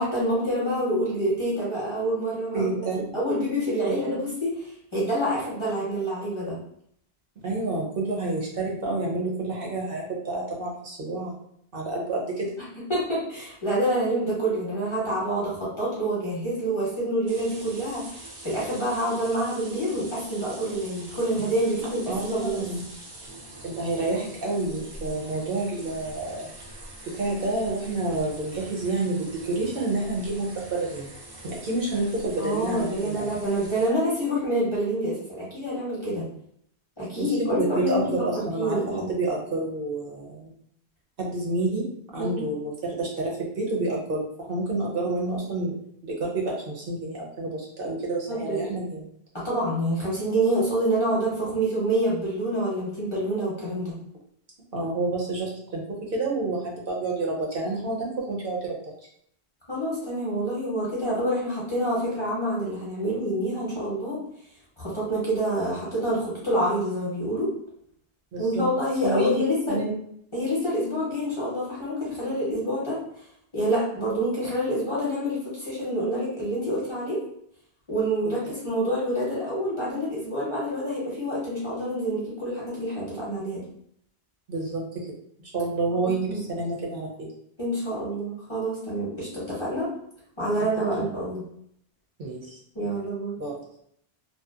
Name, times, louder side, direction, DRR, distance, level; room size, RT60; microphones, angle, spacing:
voice 1, 0.0-2.9 3.1-6.6 12.9-22.7 32.4-36.3 37.0-38.0 38.3-39.1 42.2-42.4 48.3-48.7 49.3-53.9 59.7-64.2 64.8-67.5 68.4-69.8 70.3-73.0 73.5-77.2 77.9-83.6 86.0-86.4 87.6-89.9 90.4-91.4 92.7-93.4, right 1 dB, 30° left, -8 dB, 0.8 m, -27 dB
voice 2, 2.5-3.0 3.9-4.1 7.4-11.3 11.7-12.5 22.1-22.9 23.6-26.5 27.0-31.1 31.4-33.3 37.2-40.5 41.2-41.9 42.1-45.8 46.0-49.1 54.7-58.8 68.3-68.7 69.0-70.0 84.5-85.1 85.5-87.3 91.0-91.1 92.2-92.6 93.4-93.5, right 2 dB, 60° right, -3 dB, 0.8 m, -29 dB
sound 1, 17.3-33.9, right 1 dB, 45° right, 0.3 m, -44 dB
2.7 x 2.0 x 2.3 m, 0.68 s
omnidirectional pair, 1.1 m